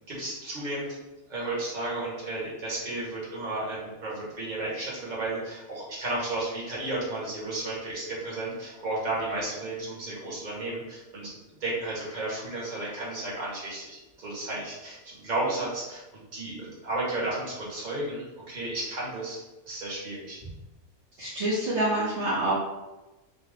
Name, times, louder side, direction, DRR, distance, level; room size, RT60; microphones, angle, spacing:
voice 1, 0.1-0.9 1.3-11.3 11.6-20.4, right 2 dB, 35° right, -6 dB, 1.4 m, -33 dB
voice 2, 21.2-22.5, right 1 dB, 55° right, -7 dB, 1.1 m, -26 dB
5.5 x 2.2 x 3.7 m, 1.1 s
omnidirectional pair, 1.5 m